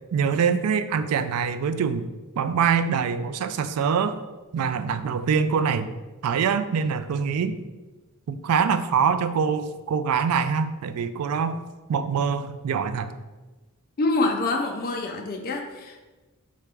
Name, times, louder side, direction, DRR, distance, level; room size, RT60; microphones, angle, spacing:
voice 1, 0.1-2.1 2.4-4.2 4.5-5.9 6.2-7.6 8.3-11.6 11.9-13.1, right 6 dB, 80° right, 11 dB, 0.3 m, -24 dB
voice 2, 14.0-16.0, left 2 dB, 45° left, 3 dB, 0.4 m, -26 dB
3.3 x 2.9 x 4.6 m, 1.2 s
head